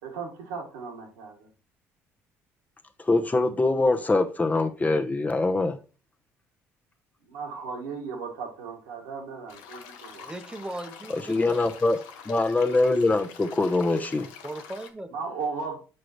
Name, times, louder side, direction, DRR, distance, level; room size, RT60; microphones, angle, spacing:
voice 1, 0.0-1.5 7.3-10.3 15.1-15.8, right 5 dB, 85° right, 1.7 m, -36 dB
voice 2, 3.0-5.8 11.1-12.0 12.3-14.3, left 2 dB, 20° left, 0.8 m, -23 dB
sound 1, 9.5-14.9, left 7 dB, 80° left, 1.0 m, -46 dB
voice 3, 10.2-11.6 14.4-15.2, right 1 dB, 10° right, 0.9 m, -38 dB
7.5 x 5.0 x 3.1 m
hypercardioid pair, 60°, 7 cm